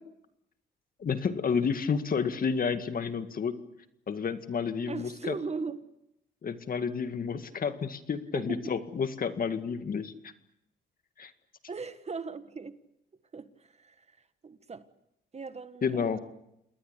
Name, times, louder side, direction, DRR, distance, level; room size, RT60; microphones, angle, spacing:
voice 1, 1.0-3.5 4.1-5.4 6.4-10.3 11.2-11.3 15.8-16.2, left 6 dB, 45° left, 2.0 m, -30 dB
voice 2, 4.9-5.9 8.3-8.7 11.7-12.8 13.3-14.2 14.4-14.9 15.3-16.2, right 4 dB, 35° right, 1.5 m, -39 dB
28.5 x 20.0 x 8.3 m
cardioid pair, 90°, 20 cm